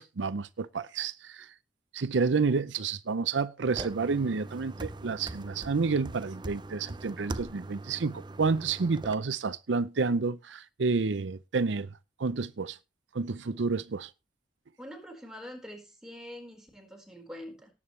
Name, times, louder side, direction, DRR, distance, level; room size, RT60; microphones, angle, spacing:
voice 1, 0.0-1.5 1.9-11.9 12.2-12.8 13.1-14.1, right 4 dB, 75° right, 0.6 m, -30 dB
sound 1, 3.7-9.1, right 2 dB, 25° right, 0.6 m, -41 dB
voice 2, 14.8-17.7, left 1 dB, 5° right, 4.5 m, -45 dB
18.0 x 8.5 x 3.2 m
head